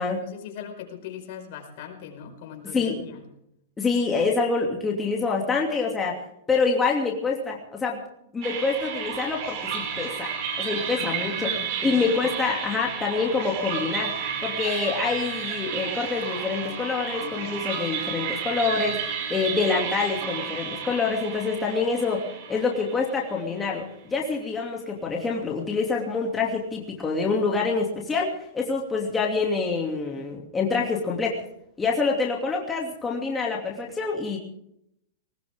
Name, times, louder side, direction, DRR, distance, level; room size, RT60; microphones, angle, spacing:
voice 1, 0.0-3.2 11.0-12.3, left 8 dB, 55° left, 2 dB, 5.0 m, -40 dB
voice 2, 2.7-3.0 3.8-6.2 6.5-8.0 8.3-10.3 10.6-11.5 11.8-14.1 14.4-19.0 19.3-31.4 31.8-34.4, left 4 dB, 15° left, -1 dB, 2.6 m, -26 dB
sound 1, 8.4-23.7, right 7 dB, 50° right, 5.5 m, -32 dB
19.5 x 19.5 x 3.7 m, 0.76 s
hypercardioid pair, 135°, 0 cm